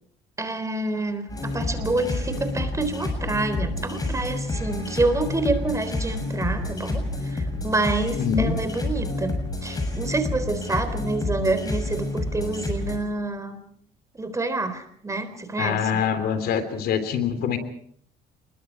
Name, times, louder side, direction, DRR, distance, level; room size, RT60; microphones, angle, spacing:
voice 1, 0.4-13.7 14.2-15.9, right 2 dB, 20° right, 10 dB, 3.9 m, -27 dB
sound 1, 1.3-13.0, left 2 dB, 20° left, 7.3 m, -29 dB
voice 2, 8.2-8.6 15.6-17.6, left 8 dB, 70° left, 10 dB, 3.4 m, -24 dB
28.0 x 21.5 x 4.7 m, 0.63 s
cardioid pair, 110°, 17 cm